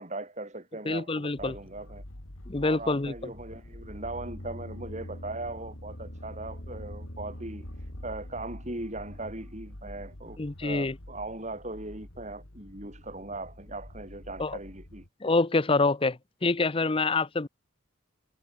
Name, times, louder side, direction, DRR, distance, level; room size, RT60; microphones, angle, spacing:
voice 1, 0.0-2.0 2.6-15.1, right 2 dB, 35° right, 5.3 m, -39 dB
voice 2, 0.9-1.5 2.5-3.1 10.4-10.9 14.4-14.6 15.2-17.5, left 3 dB, 25° left, 0.7 m, -26 dB
sound 1, 1.4-15.1, left 1 dB, 85° left, 2.9 m, -47 dB
sound 2, 3.3-8.4, equal, 60° left, 6.4 m, -44 dB
head